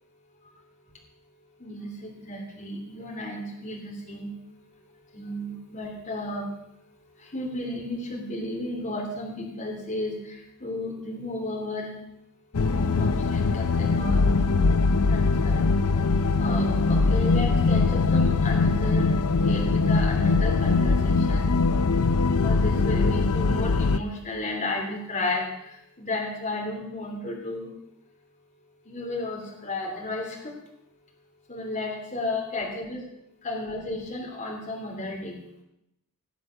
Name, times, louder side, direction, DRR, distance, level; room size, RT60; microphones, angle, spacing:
voice 1, 1.6-4.3 5.1-6.5 7.3-11.9 12.6-14.2 15.1-15.6 16.4-19.1 19.4-21.5 22.4-25.5 26.0-27.7 28.9-30.5 31.5-33.0 33.4-35.4, left 2 dB, 35° left, -1 dB, 3.2 m, -33 dB
sound 1, 12.5-24.0, left 3 dB, 90° left, 0.6 m, -22 dB
20.0 x 8.0 x 5.8 m, 0.82 s
head